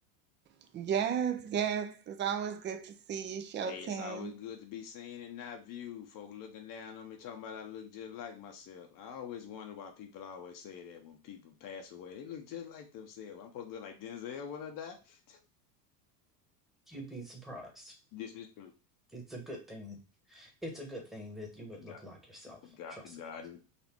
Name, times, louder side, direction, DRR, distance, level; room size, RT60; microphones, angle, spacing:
voice 1, 0.7-4.3, right 8 dB, 25° right, 0.5 m, -34 dB
voice 2, 3.6-15.4 18.1-18.7 21.8-22.0 22.6-23.6, left 8 dB, 40° left, 0.8 m, -45 dB
voice 3, 16.9-18.0 19.1-20.0 20.3-23.1, equal, ahead, 1.2 m, -45 dB
4.2 x 2.5 x 4.4 m
hypercardioid pair, 100°, 50 cm